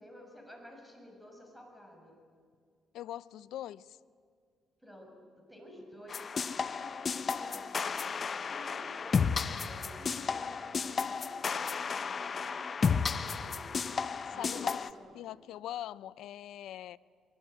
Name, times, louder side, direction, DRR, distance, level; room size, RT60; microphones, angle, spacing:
voice 1, 0.0-2.2 4.8-8.1 8.5-13.8 14.3-15.2, left 1 dB, ahead, 6.6 m, -52 dB
voice 2, 2.9-4.0 14.4-14.8 15.1-17.0, left 12 dB, 85° left, 0.6 m, -42 dB
sound 1, 6.1-14.9, left 5 dB, 40° left, 0.9 m, -33 dB
sound 2, 6.9-8.6 8.9-13.0, left 1 dB, 25° left, 5.6 m, -59 dB
24.5 x 22.5 x 9.1 m
cardioid pair, 90°, 0 cm